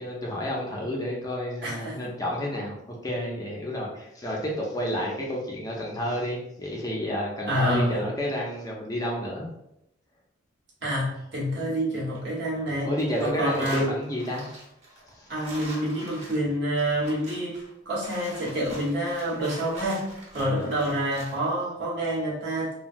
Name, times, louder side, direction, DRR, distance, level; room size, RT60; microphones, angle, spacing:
voice 1, 0.0-9.5 12.8-14.5 15.1-15.3 20.4-20.7, equal, 20° left, -2 dB, 0.5 m, -30 dB
voice 2, 1.6-2.1 7.5-8.1 10.8-12.9 13.2-13.8 15.3-20.0 20.3-22.7, equal, 70° right, -5 dB, 1.1 m, -27 dB
sound 1, 11.9-12.7 13.0-21.4, right 1 dB, 35° right, 0.9 m, -44 dB
3.1 x 2.2 x 2.5 m, 0.83 s
head